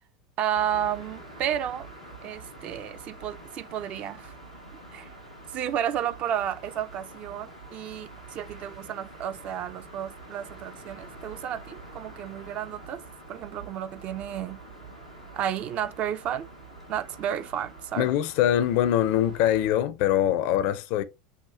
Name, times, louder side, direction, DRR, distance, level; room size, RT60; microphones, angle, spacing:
voice 1, 0.4-1.9 2.2-4.3 4.9-5.1 5.5-13.0 13.3-14.6 15.3-16.5 16.9-18.1, right 10 dB, 40° right, 0.4 m, -32 dB
sound 1, 0.5-19.7, right 2 dB, 90° right, 1.3 m, -46 dB
voice 2, 18.0-21.0, left 11 dB, 50° left, 0.4 m, -23 dB
5.7 x 2.1 x 2.6 m
figure-of-eight pair, 75°, 4 cm